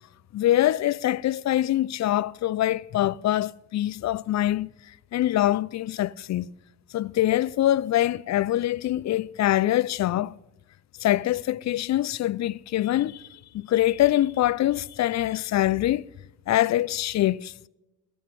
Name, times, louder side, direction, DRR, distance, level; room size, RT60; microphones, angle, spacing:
voice 1, 0.3-4.7 5.1-6.5 6.9-10.3 11.0-13.3 13.5-16.1 16.5-17.5, left 13 dB, 45° left, 0.4 m, -24 dB
14.5 x 13.5 x 3.4 m
hypercardioid pair, 55°, 42 cm